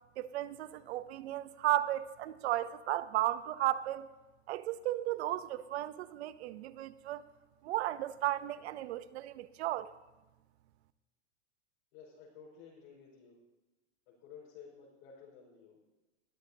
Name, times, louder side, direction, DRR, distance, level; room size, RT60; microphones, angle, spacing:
voice 1, 0.2-4.1 4.5-7.2 7.6-9.9, right 14 dB, 60° right, 0.8 m, -34 dB
voice 2, 11.9-13.4 14.1-15.9, left 6 dB, 50° left, 5.0 m, -54 dB
21.5 x 13.0 x 2.8 m
supercardioid pair, 155°, 37 cm